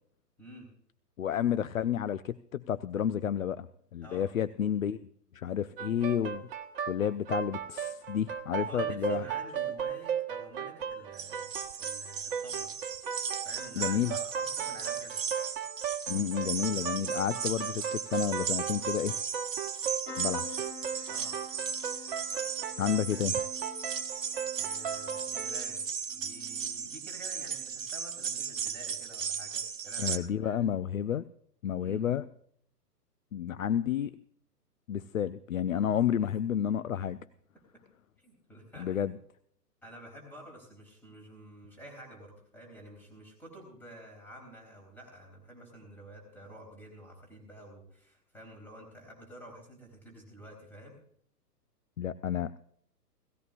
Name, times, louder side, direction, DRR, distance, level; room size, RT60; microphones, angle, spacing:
voice 1, 0.4-0.7 4.0-4.3 8.6-12.7 13.4-15.2 21.1-21.4 24.6-25.8 26.1-30.6 31.8-32.1 36.2-36.3 37.7-37.8 38.2-39.0 39.8-51.0, right 1 dB, 5° left, 0 dB, 3.9 m, -50 dB
voice 2, 1.2-3.7 3.9-5.1 5.3-6.5 6.9-9.3 13.8-14.2 16.1-19.2 20.2-20.7 22.8-23.4 30.0-31.2 31.6-32.2 33.3-34.2 34.9-37.2 38.8-39.2 52.0-52.6, left 9 dB, 55° left, 14 dB, 0.6 m, -31 dB
sound 1, 5.8-25.6, right 8 dB, 35° right, 1.4 m, -36 dB
sound 2, 11.1-30.2, right 7 dB, 50° right, 1.0 m, -36 dB
sound 3, 20.1-27.9 28.3-28.9 30.1-30.3 30.6-30.7, left 4 dB, 40° left, 3.7 m, -49 dB
18.0 x 16.5 x 2.4 m, 0.64 s
figure-of-eight pair, 120°, 48 cm